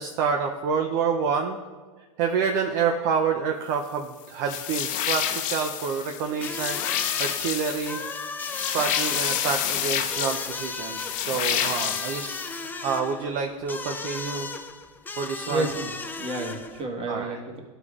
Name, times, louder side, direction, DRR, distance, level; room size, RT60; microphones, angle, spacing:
voice 1, 0.0-1.6 2.2-8.0 8.6-12.5 12.8-14.5 15.2-15.7 17.1-17.4, right 6 dB, 50° right, 3 dB, 0.6 m, -28 dB
sound 1, 4.5-12.7, left 10 dB, 50° left, 0.7 m, -29 dB
sound 2, 6.4-16.8, left 3 dB, 10° left, 0.4 m, -36 dB
voice 2, 15.5-17.6, right 2 dB, 35° right, 1 dB, 1.5 m, -30 dB
12.0 x 5.0 x 2.4 m, 1.4 s
hypercardioid pair, 100°, 18 cm